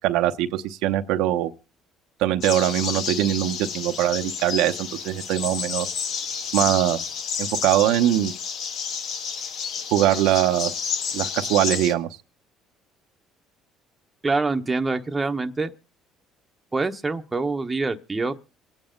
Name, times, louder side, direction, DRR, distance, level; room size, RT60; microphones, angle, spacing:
voice 1, 0.0-1.5 2.2-5.9 6.5-7.0 7.4-8.3 9.9-10.8 11.1-12.1, right 13 dB, 85° right, 0.9 m, -22 dB
sound 1, 2.4-11.9, left 6 dB, 65° left, 1.5 m, -30 dB
voice 2, 14.2-15.7 16.7-18.3, right 3 dB, 20° right, 1.0 m, -25 dB
26.0 x 9.0 x 3.8 m
cardioid pair, 100°, 0 cm